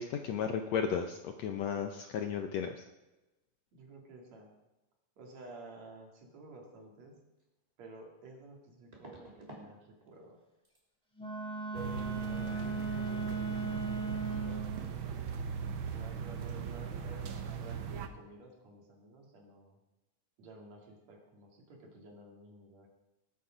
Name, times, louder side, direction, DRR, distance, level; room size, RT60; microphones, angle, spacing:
voice 1, 0.0-2.7, left 7 dB, 70° left, 6 dB, 1.7 m, -34 dB
voice 2, 3.7-4.5 5.2-7.2 7.8-10.4 11.2-11.3 11.7-15.1 15.9-17.3 17.6-19.8 20.4-22.9, right 2 dB, 55° right, 0 dB, 3.3 m, -52 dB
sound 1, 7.4-7.5 8.9-9.7 10.0-10.4 10.6-10.8 13.8-13.9 14.1-14.4 14.6-14.8, right 1 dB, 10° right, 2.7 m, -53 dB
Wind instrument woodwind instrument, 11.2-14.8, right 4 dB, 5° left, 0.9 m, -37 dB
sound 2, 11.7-18.1, right 7 dB, 75° right, 1.1 m, -39 dB
20.0 x 8.6 x 5.0 m, 1.0 s
omnidirectional pair, 3.8 m